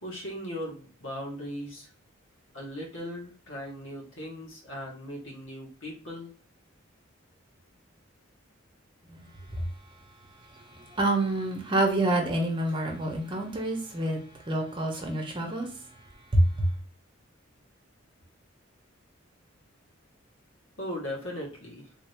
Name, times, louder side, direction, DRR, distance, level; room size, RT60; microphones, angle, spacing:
voice 1, 0.0-1.9 2.5-6.3 20.8-21.9, equal, 75° left, 1.5 m, -38 dB
voice 2, 10.3-15.9 16.3-16.7, right 1 dB, 25° right, 0.9 m, -28 dB
3.6 x 2.7 x 3.3 m
head